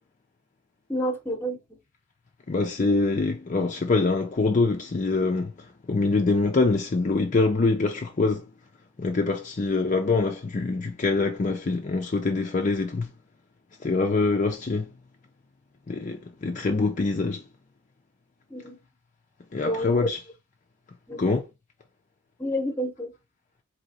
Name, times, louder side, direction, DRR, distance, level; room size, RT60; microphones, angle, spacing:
voice 1, 0.9-1.8 18.5-18.8 19.6-19.9 21.1-21.2 22.4-23.1, equal, 10° left, 0.9 m, -29 dB
voice 2, 2.5-8.5 9.0-13.1 13.8-14.9 15.9-17.4 19.5-20.2 21.2-21.4, left 3 dB, 40° left, 0.5 m, -24 dB
3.9 x 2.8 x 4.2 m
head